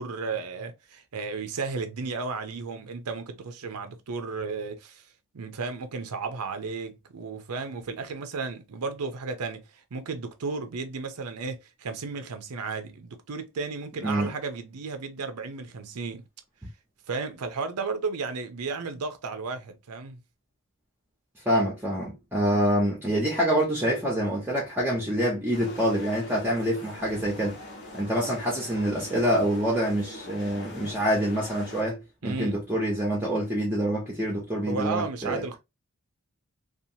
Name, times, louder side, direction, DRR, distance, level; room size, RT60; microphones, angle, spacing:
voice 1, 0.0-5.0 5.3-16.3 17.1-20.2 32.2-32.6 34.7-35.6, right 4 dB, 90° right, 0.6 m, -34 dB
voice 2, 14.0-14.3 21.4-27.6 27.9-35.6, equal, 10° right, 0.7 m, -26 dB
sound 1, 25.5-31.8, left 1 dB, 75° left, 1.1 m, -43 dB
2.8 x 2.4 x 2.7 m
head